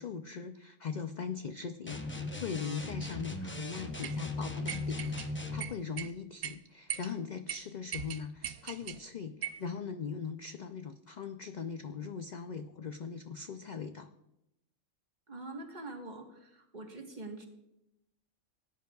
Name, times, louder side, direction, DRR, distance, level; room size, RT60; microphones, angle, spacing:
voice 1, 0.0-14.1, left 6 dB, 65° left, 8 dB, 0.4 m, -40 dB
sound 1, 1.9-5.7, left 2 dB, 15° left, 0.5 m, -38 dB
sound 2, 4.0-4.2 4.7-5.3 5.6-6.1 6.4-6.5 6.9-7.1 7.5-7.6 7.9-9.0 9.4-9.6, right 9 dB, 85° right, 1.0 m, -39 dB
voice 2, 15.3-17.5, right 2 dB, 35° right, 2 dB, 1.5 m, -44 dB
18.5 x 10.5 x 2.3 m, 0.86 s
omnidirectional pair, 1.3 m